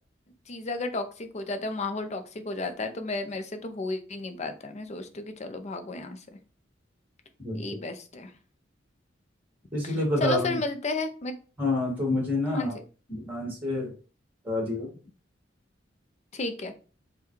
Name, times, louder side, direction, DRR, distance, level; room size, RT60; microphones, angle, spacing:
voice 1, 0.5-6.2 7.5-8.3 9.8-11.4 12.5-12.7 16.3-16.7, left 2 dB, 35° left, 8 dB, 0.5 m, -33 dB
voice 2, 9.7-10.6 11.6-12.7 13.1-13.9 14.4-14.9, left 2 dB, 10° right, -2 dB, 1.9 m, -28 dB
5.5 x 2.3 x 3.1 m, 0.37 s
head